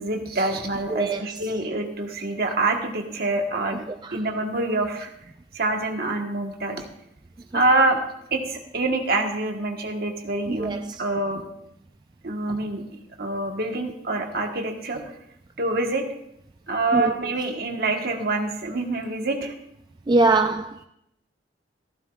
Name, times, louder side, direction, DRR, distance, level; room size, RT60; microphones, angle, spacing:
voice 1, 0.0-3.8 4.1-5.1 5.5-6.8 7.5-8.0 8.3-11.4 12.2-15.0 15.6-16.0 16.7-19.5 20.2-20.4, right 2 dB, 55° right, 1.5 m, -26 dB
voice 2, 0.9-1.2 10.5-10.8 16.9-17.1 20.1-20.8, right 3 dB, 25° right, 0.3 m, -21 dB
15.5 x 13.5 x 2.5 m
head